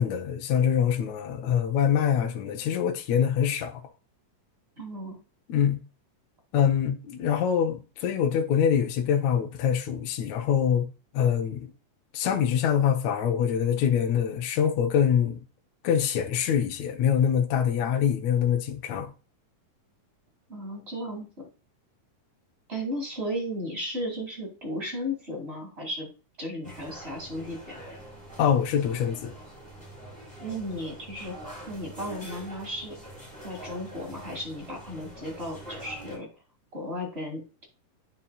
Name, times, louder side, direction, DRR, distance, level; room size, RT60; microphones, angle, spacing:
voice 1, 0.0-3.8 5.5-5.8 6.5-10.9 11.1-11.7 12.1-15.4 15.8-19.1 28.4-29.3, left 8 dB, 65° left, 1.9 m, -24 dB
voice 2, 4.8-5.2 20.5-21.5 22.7-26.1 26.4-28.0 30.4-33.1 33.4-36.3 36.7-37.6, equal, 20° right, 2.1 m, -35 dB
sound 1, 26.6-36.2, right 1 dB, ahead, 3.6 m, -44 dB
9.4 x 5.7 x 2.3 m
omnidirectional pair, 4.0 m